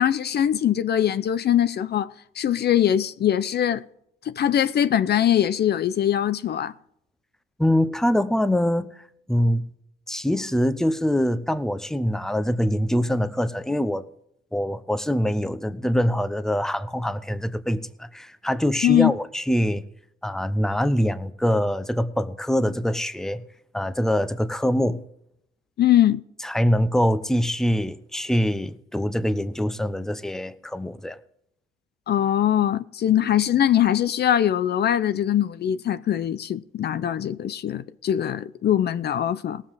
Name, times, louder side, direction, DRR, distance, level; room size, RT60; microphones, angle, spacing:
voice 1, 0.0-3.8 4.2-6.7 18.8-19.1 25.8-26.2 32.1-39.6, left 10 dB, 55° left, 0.6 m, -22 dB
voice 2, 7.6-8.9 9.3-9.7 10.1-14.0 14.5-19.8 20.2-23.4 23.7-25.0 26.4-31.2, equal, ahead, 0.8 m, -24 dB
18.0 x 7.5 x 4.9 m
cardioid pair, 90°, 20 cm